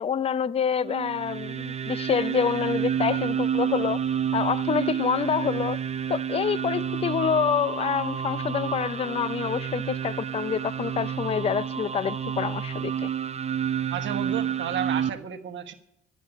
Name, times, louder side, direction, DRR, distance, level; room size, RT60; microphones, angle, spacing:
voice 1, 0.0-4.0 4.3-5.8 6.1-13.1, left 7 dB, 30° left, 0.4 m, -27 dB
sound 1, 0.8-15.1, right 8 dB, 35° right, 0.6 m, -29 dB
voice 2, 13.9-15.7, right 9 dB, 70° right, 1.2 m, -32 dB
11.5 x 7.2 x 9.9 m
cardioid pair, 90°, 20 cm